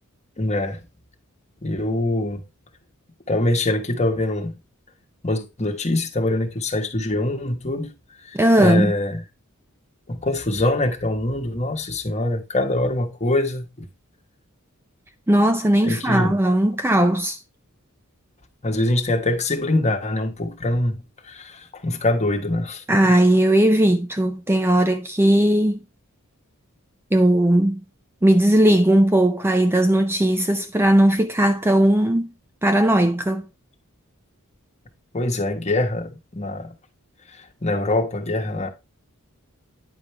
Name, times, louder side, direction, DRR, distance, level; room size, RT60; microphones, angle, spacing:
voice 1, 0.4-0.8 1.6-2.4 3.3-4.5 5.2-7.9 8.3-9.2 10.1-13.9 15.8-16.3 18.6-21.0 21.2-23.1 35.1-36.7 37.6-38.7, left 1 dB, 30° left, 1.4 m, -24 dB
voice 2, 8.3-8.9 15.3-17.4 22.9-25.8 27.1-27.8 28.2-32.3 32.6-33.5, right 1 dB, 10° right, 0.5 m, -18 dB
9.8 x 5.1 x 3.3 m
head